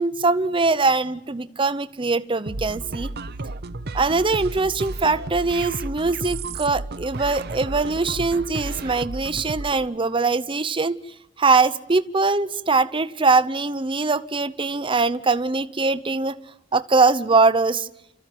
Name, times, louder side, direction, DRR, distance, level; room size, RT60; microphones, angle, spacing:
voice 1, 0.0-3.1 3.9-11.0 11.4-16.4 16.7-17.9, right 3 dB, 25° right, 13 dB, 0.8 m, -22 dB
sound 1, 2.5-9.9, right 2 dB, 55° right, 0.8 m, -33 dB
30.0 x 14.5 x 9.3 m, 0.86 s
head